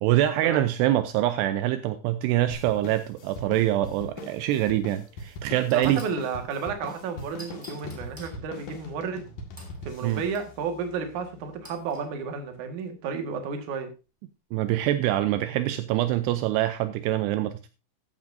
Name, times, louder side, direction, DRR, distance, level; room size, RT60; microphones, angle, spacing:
voice 1, 0.0-6.0 10.0-10.2 14.5-17.7, right 14 dB, 85° right, 10 dB, 2.4 m, -25 dB
sound 1, 2.5-11.3, left 2 dB, 55° left, 2.7 m, -42 dB
sound 2, 5.7-6.2 7.4-8.4 9.6-10.5 11.6-12.1, equal, 10° right, 1.1 m, -48 dB
voice 2, 5.7-9.2 9.8-13.9, right 5 dB, 55° right, 5 dB, 2.4 m, -32 dB
14.0 x 11.0 x 2.6 m, 0.30 s
omnidirectional pair, 5.5 m